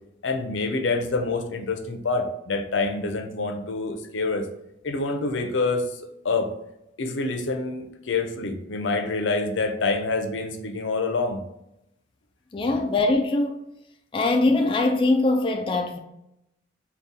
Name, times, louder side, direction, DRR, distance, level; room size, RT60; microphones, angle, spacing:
voice 1, 0.2-4.5 4.8-6.0 6.2-6.5 7.0-11.4, left 3 dB, 80° left, 0.6 m, -26 dB
voice 2, 12.5-13.6 14.1-16.0, left 2 dB, 30° left, 0.3 m, -22 dB
4.1 x 2.3 x 3.7 m
head